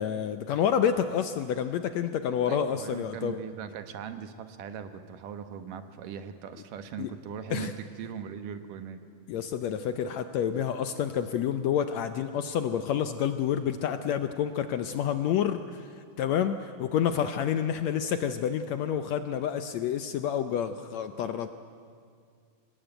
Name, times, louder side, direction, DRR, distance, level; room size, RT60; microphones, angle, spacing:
voice 1, 0.0-3.4 7.0-7.1 7.5-7.7 9.3-21.5, left 9 dB, 75° left, 9 dB, 1.7 m, -29 dB
voice 2, 2.5-9.0, right 7 dB, 80° right, 9 dB, 2.8 m, -40 dB
25.5 x 20.0 x 9.0 m, 2.2 s
omnidirectional pair, 3.8 m